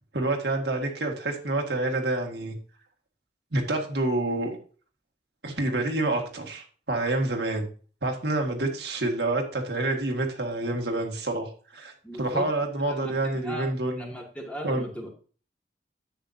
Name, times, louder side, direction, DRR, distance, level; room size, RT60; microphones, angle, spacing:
voice 1, 0.1-2.5 3.5-4.6 5.4-7.7 8.0-11.9 12.2-14.1 14.6-14.9, right 2 dB, 70° right, 2 dB, 1.9 m, -28 dB
voice 2, 12.0-12.5 12.9-13.7 14.0-15.1, equal, 5° left, -1 dB, 2.1 m, -37 dB
10.5 x 8.0 x 2.7 m, 0.39 s
head